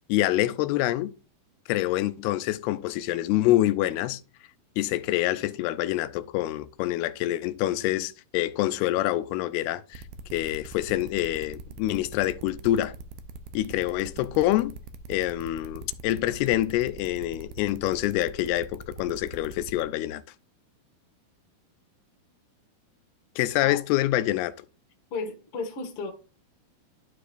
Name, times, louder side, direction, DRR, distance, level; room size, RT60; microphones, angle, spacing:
voice 1, 0.1-1.1 1.7-4.2 4.8-10.0 10.3-12.9 13.5-14.7 15.1-20.2 23.4-24.6, left 15 dB, 85° left, 2.5 m, -26 dB
sound 1, 9.9-19.8, right 4 dB, 75° right, 2.1 m, -42 dB
voice 2, 25.1-26.1, left 4 dB, 55° left, 1.6 m, -33 dB
12.0 x 4.9 x 2.5 m
omnidirectional pair, 4.5 m